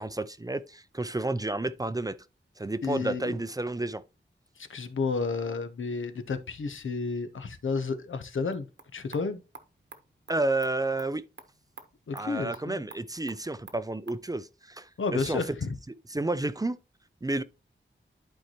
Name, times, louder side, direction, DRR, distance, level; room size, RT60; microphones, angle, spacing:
voice 1, 0.0-2.2 2.6-4.0 10.3-11.2 12.1-15.4 16.1-16.8 17.2-17.4, right 2 dB, 20° right, 0.4 m, -31 dB
voice 2, 2.8-3.4 4.6-8.7 8.9-9.4 12.1-12.8 15.0-15.8, left 4 dB, 90° left, 0.8 m, -31 dB
sound 1, 8.5-14.3, right 4 dB, 65° right, 1.1 m, -52 dB
11.5 x 4.6 x 2.9 m
wide cardioid pair, 95°, 20 cm